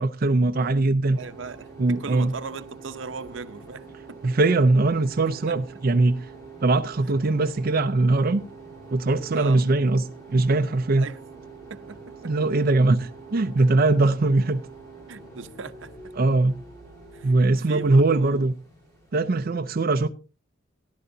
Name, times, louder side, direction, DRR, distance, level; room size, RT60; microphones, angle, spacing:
voice 1, 0.0-1.2 1.8-2.3 4.2-6.2 6.6-8.4 8.9-11.0 12.2-14.6 16.2-16.6 17.2-18.5 19.1-20.1, right 2 dB, 50° right, 0.5 m, -21 dB
sound 1, 1.1-19.4, right 4 dB, 15° left, 7.6 m, -45 dB
voice 2, 1.2-4.3 5.5-5.6 9.3-9.6 11.0-11.2 11.7-12.5 15.1-15.9 17.1-18.5, right 4 dB, 75° right, 0.8 m, -38 dB
17.5 x 11.5 x 2.7 m
head